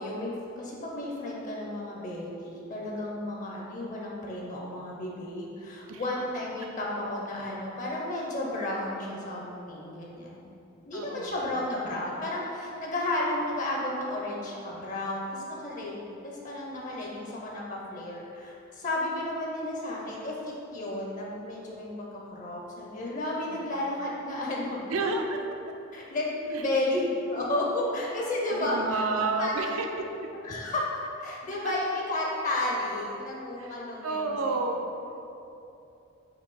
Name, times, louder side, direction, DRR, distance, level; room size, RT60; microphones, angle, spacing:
voice 1, 0.0-10.4 10.8-22.1 22.3-24.9 25.9-27.0 27.3-29.0 29.4-29.5 30.4-34.2, left 1 dB, 40° left, -3 dB, 0.5 m, -32 dB
voice 2, 10.9-11.4 23.5-23.6 24.9-25.4 26.5-26.7 28.5-29.9 30.2-30.3 31.6-31.7 33.6-33.8 34.0-34.8, right 3 dB, 75° right, 4 dB, 0.4 m, -30 dB
4.6 x 2.7 x 3.9 m, 2.8 s
head